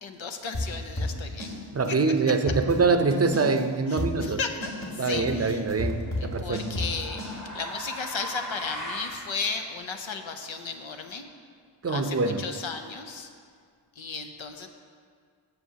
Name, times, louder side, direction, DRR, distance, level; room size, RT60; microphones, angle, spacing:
voice 1, 0.0-1.5 3.9-5.6 6.2-11.2 11.9-13.3 14.0-14.7, left 5 dB, 80° left, 5 dB, 0.8 m, -35 dB
sound 1, 0.5-1.6 1.8-1.9 2.3-3.6 4.0-7.3, left 1 dB, 60° left, 2.4 m, -31 dB
voice 2, 1.7-4.4 5.0-6.8 11.8-12.5, right 4 dB, 35° right, 8 dB, 0.6 m, -24 dB
sound 2, 5.1-5.5 6.5-9.3, equal, 40° left, 1.4 m, -38 dB
14.5 x 5.9 x 2.8 m, 2.1 s
wide cardioid pair, 55°, 46 cm